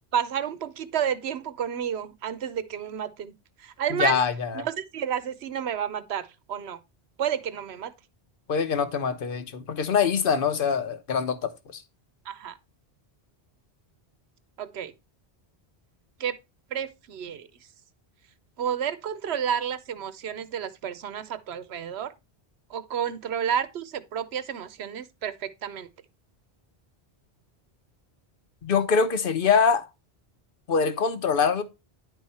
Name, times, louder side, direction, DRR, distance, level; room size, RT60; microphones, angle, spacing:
voice 1, 0.1-3.3 3.6-4.2 4.5-6.8 7.2-7.9 12.3-12.6 14.6-14.9 16.2-16.4 16.7-17.5 18.6-22.1 22.7-25.9, right 8 dB, 80° right, 1.0 m, -30 dB
voice 2, 3.9-4.7 8.5-11.8 28.6-29.9 30.7-31.6, left 6 dB, 60° left, 1.1 m, -24 dB
10.5 x 4.8 x 4.1 m
omnidirectional pair, 1.1 m